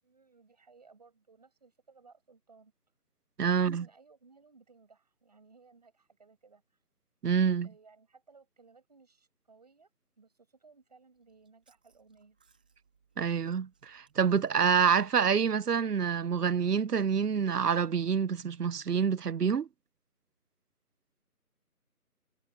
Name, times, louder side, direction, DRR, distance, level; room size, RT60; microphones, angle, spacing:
voice 1, 0.0-2.7 3.4-6.8 7.6-9.9 10.2-12.4, right 4 dB, 25° right, 7.1 m, -60 dB
voice 2, 3.4-3.9 7.2-7.7 13.2-19.7, right 6 dB, 85° right, 0.8 m, -27 dB
Chewing mastication, 11.1-16.5, right 5 dB, 5° right, 2.2 m, -71 dB
figure-of-eight pair, 175°, 45 cm